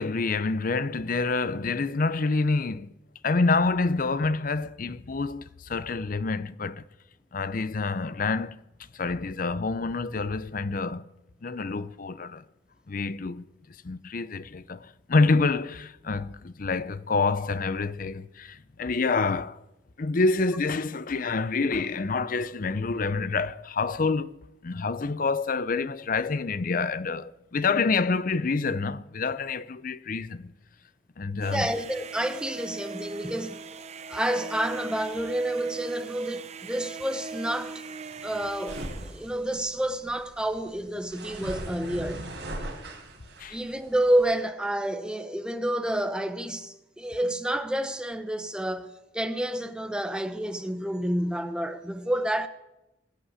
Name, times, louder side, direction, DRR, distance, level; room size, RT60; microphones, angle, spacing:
voice 1, 0.0-2.9 3.2-6.8 7.3-8.6 8.9-11.1 11.4-12.4 12.9-13.5 13.8-19.6 20.0-24.4 24.6-30.5 31.2-31.7 43.4-43.6, left 3 dB, 45° left, 0.6 m, -27 dB
sound 1, 31.4-39.4, right 4 dB, 35° right, 0.7 m, -40 dB
voice 2, 31.5-33.6 34.1-37.8 38.2-42.2 43.5-52.5, right 1 dB, 5° right, 0.9 m, -29 dB
sound 2, 38.7-44.4, right 1 dB, 65° right, 4.4 m, -40 dB
20.0 x 8.5 x 8.2 m
head